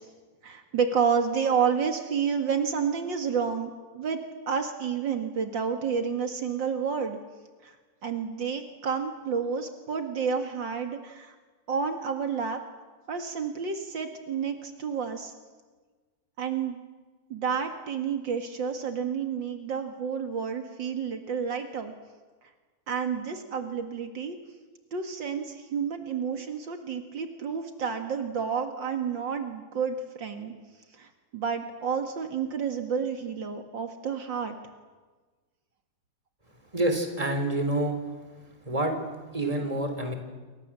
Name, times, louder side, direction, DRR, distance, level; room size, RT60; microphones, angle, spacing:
voice 1, 0.4-4.2 4.5-7.2 8.0-11.3 11.7-12.6 13.1-15.3 16.4-16.8 17.3-21.9 22.9-24.4 24.9-30.5 31.0-31.1 31.3-34.5, right 6 dB, 70° right, 6 dB, 2.6 m, -30 dB
voice 2, 36.7-38.0 38.7-39.0 39.3-40.1, right 1 dB, 15° right, 6 dB, 3.9 m, -27 dB
28.5 x 25.0 x 7.6 m, 1.3 s
omnidirectional pair, 2.1 m